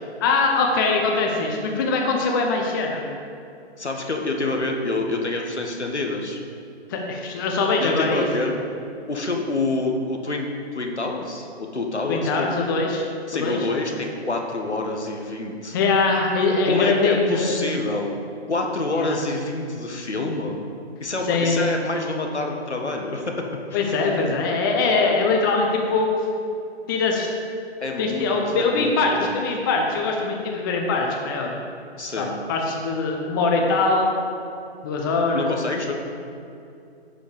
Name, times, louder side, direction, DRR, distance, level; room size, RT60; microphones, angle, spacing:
voice 1, 0.2-3.0 6.9-8.5 12.1-13.1 13.3-13.6 13.9-14.0 15.7-17.7 18.9-19.2 21.3-21.7 23.7-26.1 26.9-27.3 28.0-31.6 32.2-34.2 34.8-35.5, left 3 dB, 20° left, 0 dB, 0.8 m, -22 dB
voice 2, 3.8-6.4 7.8-8.5 9.1-10.5 10.7-12.5 13.3-15.8 16.6-18.1 18.5-20.6 21.0-23.8 27.8-28.9 29.2-29.4 32.0-32.3 35.3-35.9, left 2 dB, 80° left, 2 dB, 1.7 m, -27 dB
10.5 x 5.2 x 6.8 m, 2.5 s
figure-of-eight pair, 140°, 33 cm